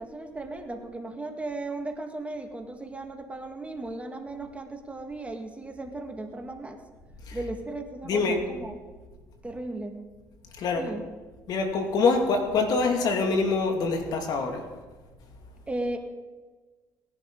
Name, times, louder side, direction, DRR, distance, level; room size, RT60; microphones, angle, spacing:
voice 1, 0.0-6.8 7.3-8.8 9.4-10.0 10.7-11.0 15.7-16.0, right 2 dB, 15° right, 4 dB, 1.8 m, -36 dB
voice 2, 8.0-8.4 10.6-10.9 11.5-14.6, left 4 dB, 60° left, 4 dB, 2.3 m, -25 dB
19.0 x 10.5 x 3.9 m, 1.3 s
supercardioid pair, 75°, 7 cm